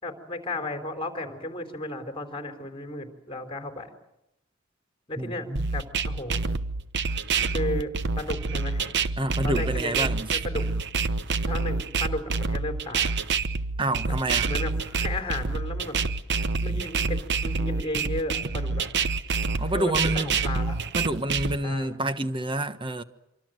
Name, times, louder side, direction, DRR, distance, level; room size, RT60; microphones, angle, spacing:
voice 1, 0.0-3.9 5.1-6.4 7.5-9.0 9.4-10.7 11.5-13.2 14.5-16.0 16.6-18.8 19.7-20.8 21.6-22.0, left 1 dB, 25° left, 4.0 m, -34 dB
voice 2, 5.2-5.7 9.2-10.3 13.8-14.5 19.6-20.4 20.9-23.0, right 1 dB, 25° right, 1.3 m, -28 dB
sound 1, 5.6-21.6, right 4 dB, 60° right, 1.1 m, -27 dB
26.5 x 24.5 x 7.8 m
head